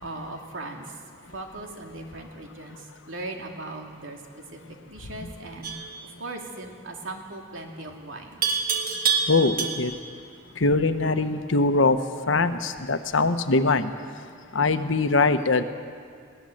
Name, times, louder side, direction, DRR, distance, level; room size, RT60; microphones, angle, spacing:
voice 1, 0.0-1.0 1.3-8.4, right 2 dB, 80° right, 2 dB, 2.6 m, -39 dB
Livestock farm animals working animals, 5.6-6.0 8.4-10.1, right 5 dB, 45° right, 1.8 m, -26 dB
voice 2, 9.3-9.9 10.6-12.0 12.3-13.9 14.5-15.6, left 3 dB, 80° left, 9 dB, 1.0 m, -22 dB
21.5 x 17.0 x 7.8 m, 2.2 s
head